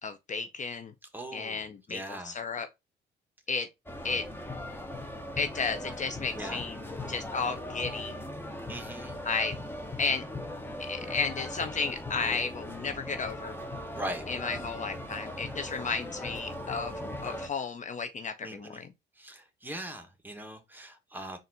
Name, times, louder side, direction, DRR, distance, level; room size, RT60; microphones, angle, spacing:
voice 1, 0.0-0.9 1.3-2.7 3.5-3.7 4.0-4.3 5.4-6.8 7.1-8.2 9.2-9.6 10.0-10.2 10.8-13.5 14.3-18.9, left 5 dB, 40° left, 0.5 m, -33 dB
voice 2, 1.1-2.3 6.3-6.6 8.7-9.1 13.9-14.3 18.4-18.8 19.2-21.4, right 1 dB, 10° right, 1.1 m, -40 dB
sound 1, 3.9-17.5, left 1 dB, 10° left, 0.8 m, -39 dB
4.1 x 2.5 x 3.9 m
cardioid pair, 90°, 20 cm